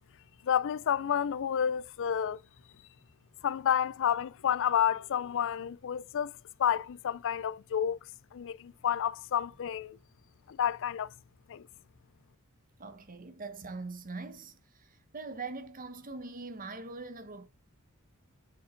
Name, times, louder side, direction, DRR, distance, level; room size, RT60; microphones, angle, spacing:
voice 1, 0.4-2.4 3.4-6.3 6.6-8.0 8.3-10.0 10.5-11.1 11.5-11.7, left 8 dB, 60° left, 0.4 m, -30 dB
voice 2, 12.8-14.6 15.1-17.5, right 3 dB, 40° right, 1.2 m, -42 dB
7.5 x 6.9 x 2.6 m
head